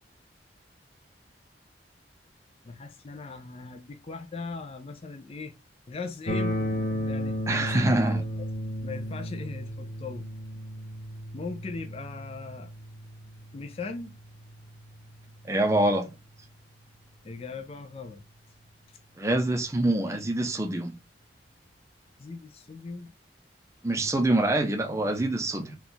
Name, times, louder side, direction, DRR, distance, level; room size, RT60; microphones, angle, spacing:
voice 1, 2.6-5.5 5.9-8.3 8.8-10.3 11.3-12.7 13.5-14.2 17.2-18.2 18.9-19.0 20.1-20.2 22.2-23.1, left 4 dB, 35° left, 0.4 m, -39 dB
sound 1, 6.3-16.2, equal, 65° left, 0.8 m, -35 dB
voice 2, 7.5-8.2 15.4-16.1 19.2-20.9 23.8-25.8, right 1 dB, 15° right, 0.5 m, -25 dB
4.1 x 2.3 x 3.8 m
head